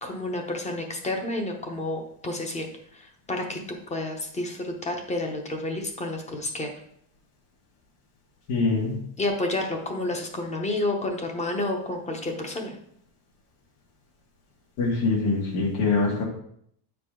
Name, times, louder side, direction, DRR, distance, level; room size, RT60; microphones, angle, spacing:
voice 1, 0.0-2.7 2.9-6.7 9.2-12.8, left 2 dB, 15° left, 3 dB, 0.8 m, -30 dB
voice 2, 8.5-8.9 14.8-16.2, left 3 dB, 85° left, -4 dB, 2.2 m, -24 dB
8.9 x 4.7 x 3.7 m, 0.69 s
cardioid pair, 165°, 47 cm